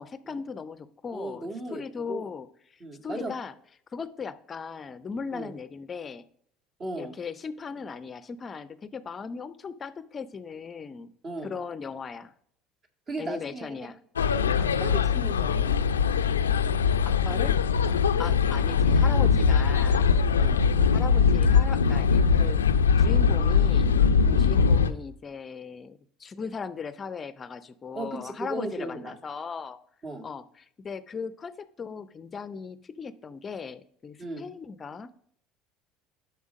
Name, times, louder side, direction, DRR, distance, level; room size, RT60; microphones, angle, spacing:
voice 1, 0.0-3.5 3.9-6.2 7.0-11.1 11.4-12.3 13.2-14.0 17.0-17.6 18.2-20.1 20.9-22.6 23.0-24.0 24.4-29.8 30.2-35.1, left 5 dB, 35° left, 14 dB, 0.5 m, -38 dB
voice 2, 1.1-2.3 2.8-3.3 5.3-5.5 6.8-7.1 11.2-11.5 13.1-13.7 14.6-15.7 18.2-18.4 20.4-20.6 24.2-24.5 27.9-29.1 30.0-30.2 34.2-34.5, right 2 dB, 40° right, 3 dB, 1.8 m, -36 dB
sound 1, 14.2-24.9, left 6 dB, 85° left, 0.4 m, -22 dB
7.2 x 5.7 x 6.1 m, 0.69 s
hypercardioid pair, 65°, 0 cm